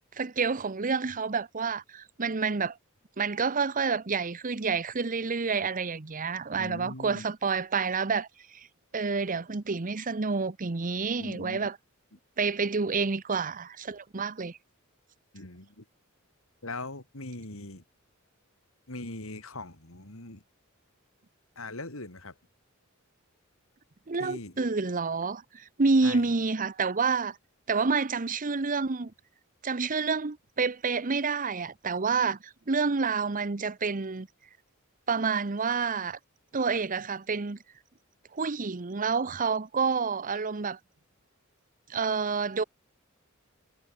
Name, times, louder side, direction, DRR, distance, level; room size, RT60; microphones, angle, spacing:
voice 1, 0.2-2.8 3.2-8.3 8.5-8.7 8.9-11.8 12.4-14.6 24.1-27.4 27.7-29.1 29.6-34.3 35.1-36.2 36.5-37.6 38.3-40.8 41.9-42.6, right 4 dB, 40° right, 0.8 m, -28 dB
voice 2, 6.6-7.3 11.2-11.7 15.3-15.8 16.6-17.8 18.9-20.4 21.6-22.3 24.2-24.5 26.0-26.2, left 2 dB, 70° left, 4.3 m, -40 dB
head